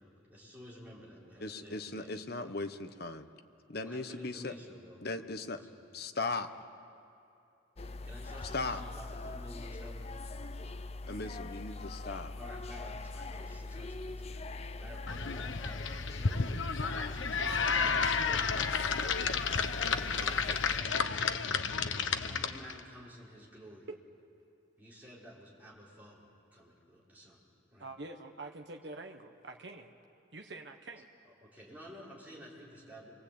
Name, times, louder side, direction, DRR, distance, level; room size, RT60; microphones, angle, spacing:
voice 1, 0.0-2.2 3.8-5.0 5.5-6.0 8.0-10.3 12.4-14.5 14.8-18.4 19.6-20.4 20.7-21.5 21.9-23.9 24.8-27.4 27.7-27.9 31.4-33.1, equal, 10° right, -6 dB, 5.5 m, -52 dB
voice 2, 1.4-3.3 3.7-4.5 5.0-5.6 5.9-6.5 8.5-8.8 11.0-12.3, left 3 dB, 50° left, 9 dB, 1.1 m, -37 dB
sound 1, 7.8-20.8, left 2 dB, 30° left, 0.6 m, -42 dB
sound 2, 15.1-22.8, left 5 dB, 75° left, 1.0 m, -32 dB
voice 3, 27.8-29.9 30.3-31.1, right 2 dB, 60° right, 4 dB, 1.2 m, -45 dB
28.0 x 24.0 x 8.8 m, 2.7 s
head